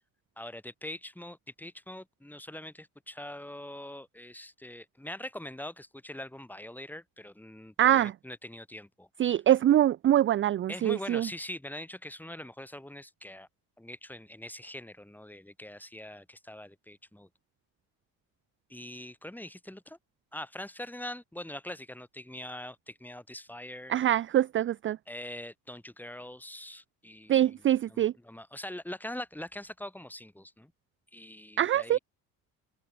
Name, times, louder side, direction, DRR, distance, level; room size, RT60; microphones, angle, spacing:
voice 1, 0.4-9.1 10.7-13.5 13.8-17.3 18.7-20.0 20.3-23.9 25.1-27.5 27.9-30.7 31.1-32.0, left 1 dB, 5° left, 4.5 m, -43 dB
voice 2, 7.8-8.1 9.2-11.3 23.9-25.0 27.3-28.1 31.6-32.0, right 12 dB, 35° right, 0.4 m, -24 dB
cardioid pair, 105°, 35 cm